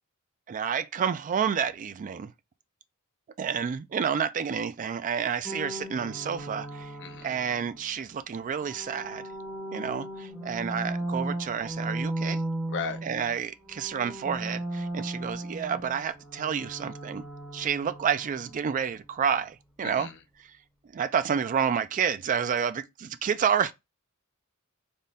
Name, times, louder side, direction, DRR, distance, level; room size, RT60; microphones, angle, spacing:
voice 1, 0.5-2.3 3.4-6.9 7.2-9.2 9.7-12.4 13.0-17.2 17.5-20.1 20.9-23.7, right 7 dB, 35° right, 0.3 m, -29 dB
sound 1, 5.4-7.9 8.5-13.4 13.6-18.6, right 1 dB, 5° right, 1.0 m, -36 dB
voice 2, 7.0-7.4 12.7-13.0 19.8-20.1, left 5 dB, 55° left, 0.7 m, -35 dB
3.5 x 2.2 x 4.0 m
head